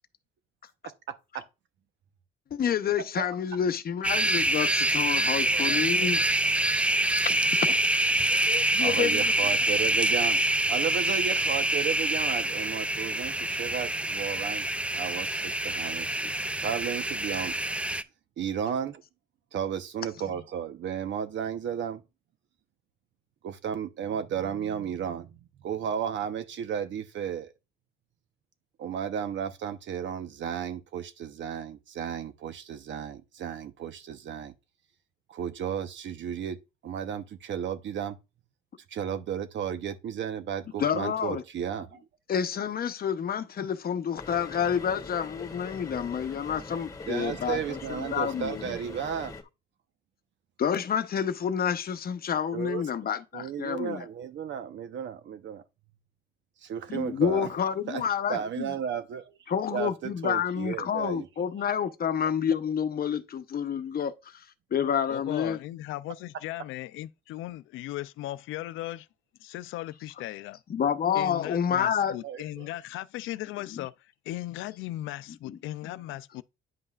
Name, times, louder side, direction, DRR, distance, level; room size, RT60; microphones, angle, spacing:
voice 1, 1.1-1.5 3.2-3.3 5.5-6.2 8.8-10.4 10.7-17.5 18.4-19.0 19.5-22.0 23.4-27.5 28.8-34.5 35.3-36.6 36.8-38.2 38.9-42.0 47.1-49.4 52.5-52.8 53.3-55.6 56.6-57.5 57.9-58.0 58.3-59.4 59.7-61.3 72.2-72.7, right 8 dB, 70° right, 0.9 m, -34 dB
voice 2, 2.5-6.2 7.2-7.8 8.3-9.3 40.8-41.4 42.3-48.8 50.6-54.0 56.9-58.7 59.5-64.4 64.7-65.6 70.7-72.1 73.7-73.8 75.5-75.6, left 8 dB, 50° left, 0.8 m, -29 dB
sound 1, 4.0-18.0, right 1 dB, 5° right, 0.4 m, -26 dB
sound 2, 44.2-49.4, left 3 dB, 20° left, 1.5 m, -42 dB
voice 3, 65.1-69.1 69.4-70.6 71.1-73.9 74.3-76.4, left 15 dB, 90° left, 0.4 m, -37 dB
9.6 x 5.4 x 2.4 m
cardioid pair, 90°, 20 cm